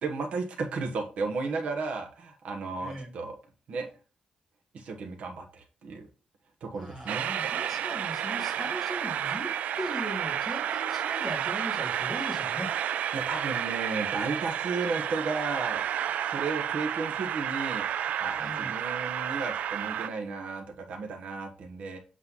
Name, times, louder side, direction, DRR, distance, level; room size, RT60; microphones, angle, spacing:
voice 1, 0.0-3.4 3.7-3.9 4.7-6.1 6.6-7.2 13.1-15.8 16.2-17.8 18.2-22.0, right 4 dB, 65° right, 3 dB, 1.2 m, -34 dB
voice 2, 2.7-3.1 6.8-12.7 18.4-18.7, equal, 5° right, -1 dB, 2.4 m, -39 dB
Train, 7.1-20.1, right 10 dB, 80° right, 0.3 m, -31 dB
8.5 x 3.2 x 5.5 m, 0.36 s
wide cardioid pair, 175°, 2 cm